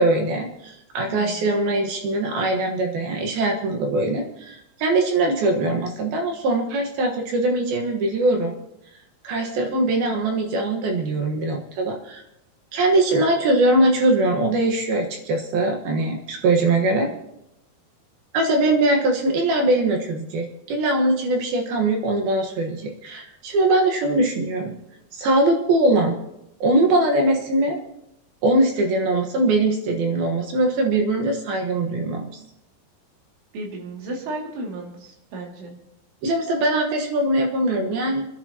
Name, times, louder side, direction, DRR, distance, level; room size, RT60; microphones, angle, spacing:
voice 1, 0.0-8.6 9.2-12.2 12.7-17.1 18.3-24.7 25.1-26.1 26.6-27.8 28.4-32.3 36.2-38.3, right 2 dB, 65° right, 2 dB, 2.9 m, -21 dB
voice 2, 1.1-1.5 33.5-35.7, right 2 dB, 90° right, -1 dB, 4.9 m, -34 dB
30.0 x 11.0 x 2.9 m, 0.84 s
omnidirectional pair, 5.3 m